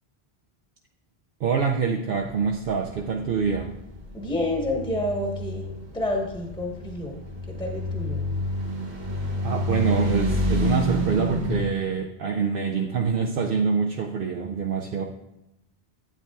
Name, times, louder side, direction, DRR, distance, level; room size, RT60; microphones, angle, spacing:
voice 1, 1.4-3.8 9.4-15.0, right 5 dB, 65° right, 2 dB, 0.8 m, -25 dB
sound 1, 2.2-11.7, equal, 45° right, 1.4 m, -29 dB
voice 2, 4.1-7.1 7.5-8.2, left 1 dB, 5° left, -1 dB, 1.1 m, -29 dB
11.0 x 8.7 x 2.3 m, 0.87 s
omnidirectional pair, 1.0 m